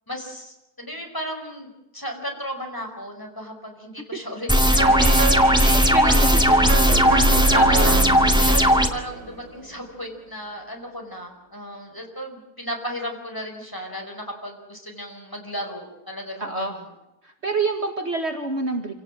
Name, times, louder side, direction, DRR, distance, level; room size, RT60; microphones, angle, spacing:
voice 1, 0.1-7.9 8.4-16.9, equal, 10° left, 2 dB, 5.3 m, -35 dB
sound 1, 4.5-8.9, equal, 5° right, 2.2 m, -17 dB
sound 2, 4.8-9.8, right 4 dB, 75° right, 3.4 m, -28 dB
voice 2, 5.6-6.5 7.2-8.0 16.4-16.7 17.2-18.9, right 3 dB, 45° right, 4 dB, 2.2 m, -28 dB
27.5 x 18.0 x 7.6 m, 0.93 s
omnidirectional pair, 1.7 m